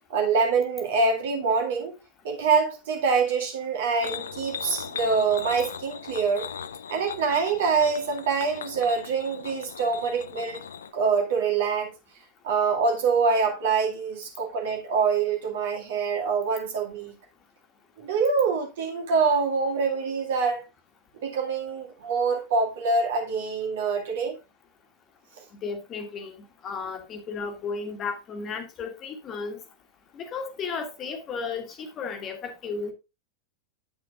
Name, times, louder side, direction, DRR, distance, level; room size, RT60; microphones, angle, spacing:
voice 1, 0.1-1.9 2.2-6.5 6.9-10.7 10.9-11.9 12.4-17.2 18.0-20.6 21.2-24.4, right 5 dB, 55° right, 2.1 m, -25 dB
sound 1, 4.0-10.9, left 7 dB, 70° left, 0.6 m, -38 dB
voice 2, 25.6-26.3 26.6-29.6 30.1-32.9, left 5 dB, 30° left, 1.6 m, -34 dB
8.8 x 8.5 x 2.4 m
figure-of-eight pair, 90°, 0 cm